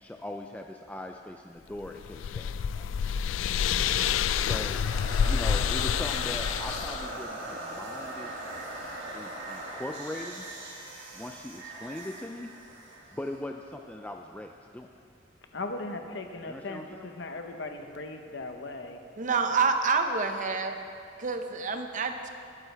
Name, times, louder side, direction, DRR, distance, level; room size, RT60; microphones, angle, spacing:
voice 1, 0.0-3.2 4.4-4.9 5.2-8.3 9.1-10.5 11.1-12.5 13.1-14.9 16.5-17.0, left 1 dB, 10° left, 3 dB, 0.4 m, -40 dB
sound 1, 1.8-7.1, left 8 dB, 90° left, 0.3 m, -28 dB
voice 2, 3.3-4.1 15.5-19.0, left 2 dB, 65° left, 4 dB, 1.0 m, -38 dB
sound 2, 4.8-13.8, right 1 dB, 70° right, 2.0 m, -40 dB
voice 3, 19.2-20.8 21.2-22.3, right 4 dB, 40° right, 6 dB, 0.8 m, -27 dB
20.5 x 9.0 x 3.4 m, 2.5 s
head